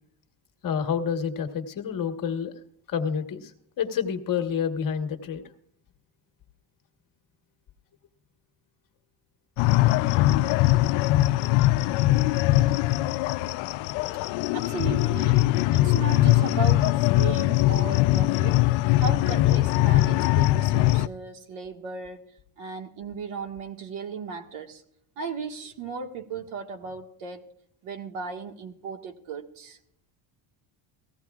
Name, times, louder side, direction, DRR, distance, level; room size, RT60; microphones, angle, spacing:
voice 1, 0.6-2.6 2.9-5.4, left 7 dB, 45° left, 1.4 m, -28 dB
sound 1, 9.6-21.1, left 17 dB, 65° left, 0.5 m, -21 dB
voice 2, 14.5-18.7 19.0-24.8 25.2-27.4 27.8-29.8, right 5 dB, 85° right, 1.8 m, -36 dB
18.0 x 15.5 x 2.4 m
cardioid pair, 130°, 48 cm